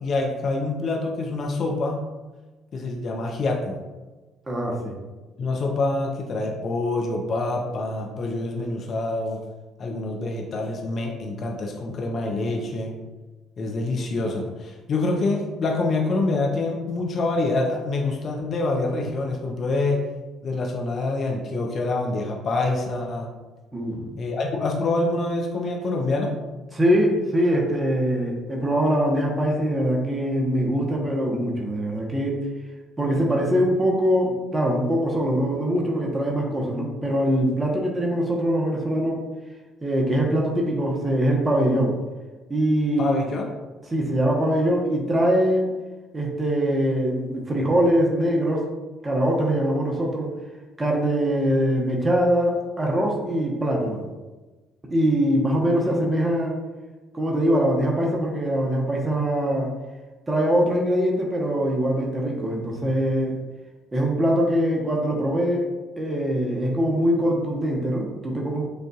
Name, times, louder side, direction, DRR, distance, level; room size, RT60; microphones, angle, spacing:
voice 1, 0.0-2.0 2.7-3.8 5.4-9.4 9.8-13.0 13.6-20.1 20.4-23.3 24.2-26.4 43.0-43.5, left 2 dB, 50° left, 1 dB, 0.6 m, -26 dB
voice 2, 4.5-5.0 23.7-24.2 26.7-32.5 33.0-39.2 39.8-42.0 42.5-43.2 43.9-45.7 46.1-48.7 49.0-50.3 50.8-54.0 54.9-56.6 57.1-59.7 60.3-63.4 63.9-65.7 66.0-68.6, equal, 20° right, -1 dB, 1.0 m, -23 dB
6.4 x 2.6 x 2.3 m, 1.2 s
hypercardioid pair, 60°, 0 cm